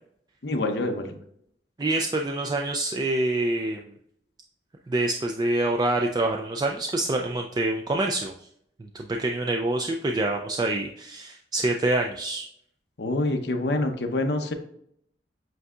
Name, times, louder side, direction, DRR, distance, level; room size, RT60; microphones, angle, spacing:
voice 1, 0.4-1.2 13.0-14.5, left 2 dB, 65° left, 5 dB, 0.7 m, -26 dB
voice 2, 1.8-3.9 4.9-8.3 8.9-12.5, right 2 dB, 25° right, 2 dB, 0.3 m, -26 dB
7.7 x 2.7 x 2.3 m, 0.70 s
head